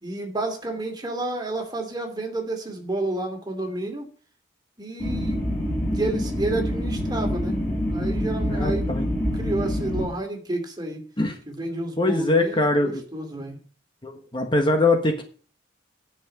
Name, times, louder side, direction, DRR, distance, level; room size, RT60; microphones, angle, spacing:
voice 1, 0.0-4.1 4.8-5.4 5.9-7.6 7.9-8.9 9.4-11.0 11.5-13.6, right 2 dB, 20° right, 3 dB, 2.6 m, -30 dB
sound 1, 5.0-10.1, equal, 5° left, 7.2 m, -26 dB
voice 2, 8.5-9.1 11.2-11.4 12.0-13.0 14.0-15.2, left 2 dB, 25° left, 4 dB, 1.4 m, -22 dB
10.0 x 6.0 x 8.7 m, 0.41 s
head